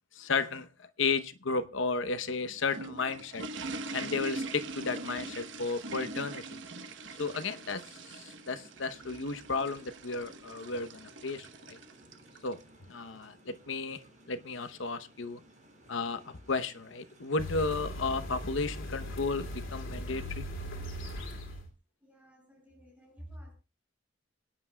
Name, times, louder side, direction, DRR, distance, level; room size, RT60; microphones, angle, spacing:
voice 1, 0.2-0.7 1.0-3.4 3.9-6.6 7.2-7.8 8.1-11.8 12.4-12.6 12.9-14.0 14.3-15.4 15.9-20.5, left 4 dB, 70° left, 0.9 m, -33 dB
sound 1, 2.5-12.6, right 2 dB, 65° right, 1.1 m, -42 dB
sound 2, 3.8-20.4, right 1 dB, 40° right, 7.0 m, -59 dB
sound 3, 17.4-21.7, left 1 dB, 90° left, 2.7 m, -39 dB
voice 2, 22.0-23.5, equal, 10° right, 6.9 m, -50 dB
26.0 x 9.8 x 2.3 m
head